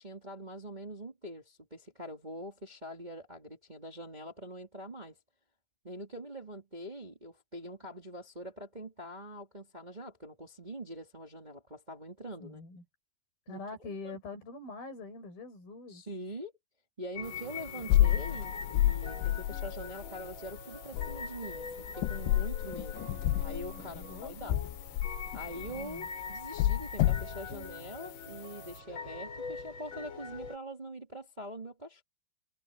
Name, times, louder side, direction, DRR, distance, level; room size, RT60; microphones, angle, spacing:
voice 1, 0.0-5.2 5.8-12.6 13.5-14.2 15.9-16.5 17.0-23.1 23.4-24.6 25.3-32.0, right 1 dB, 15° right, 1.7 m, -44 dB
voice 2, 12.4-12.8 13.5-16.0 23.7-24.6 25.8-26.1, left 3 dB, 55° left, 7.1 m, -44 dB
sound 1, 17.1-30.6, left 4 dB, 25° left, 5.9 m, -43 dB
sound 2, 17.3-28.0, left 14 dB, 85° left, 3.2 m, -30 dB
omnidirectional pair, 5.2 m